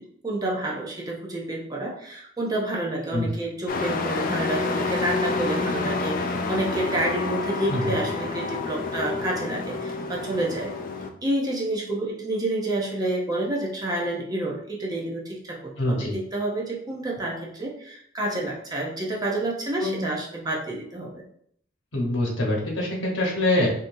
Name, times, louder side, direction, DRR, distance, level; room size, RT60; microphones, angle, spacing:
voice 1, 0.0-10.7 11.0-21.2, right 1 dB, 20° right, -2 dB, 0.6 m, -29 dB
Truck, 3.7-11.1, left 3 dB, 45° left, 0.4 m, -28 dB
voice 2, 15.8-16.1 19.8-20.1 21.9-23.7, left 1 dB, 75° left, -2 dB, 1.1 m, -24 dB
3.8 x 2.7 x 2.6 m, 0.65 s
head